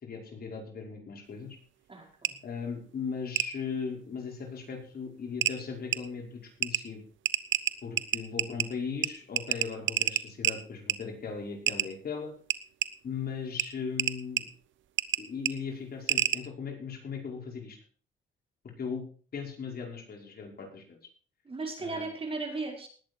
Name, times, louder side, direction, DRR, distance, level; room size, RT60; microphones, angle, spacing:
voice 1, 0.0-1.6 2.4-7.0 7.8-12.3 13.0-14.5 15.2-17.8 18.6-19.0 19.3-21.0 21.8-22.1, left 5 dB, 50° left, 1 dB, 5.5 m, -38 dB
voice 2, 1.9-2.4 21.4-22.9, right 3 dB, 30° right, 2 dB, 5.0 m, -36 dB
sound 1, 2.2-2.3 3.4-3.5 4.8-4.9 5.4-5.5 5.9-6.0 6.6-6.8 7.3-8.7 9.0-9.1 9.4-10.6 10.9-11.0 11.7-11.9 12.5-12.9 13.6-13.7 14.0-14.4 15.0-15.2 15.5-15.6 16.1-16.4, right 12 dB, 75° right, 0.9 m, -27 dB
19.5 x 8.5 x 4.6 m, 0.41 s
cardioid pair, 90°, 20 cm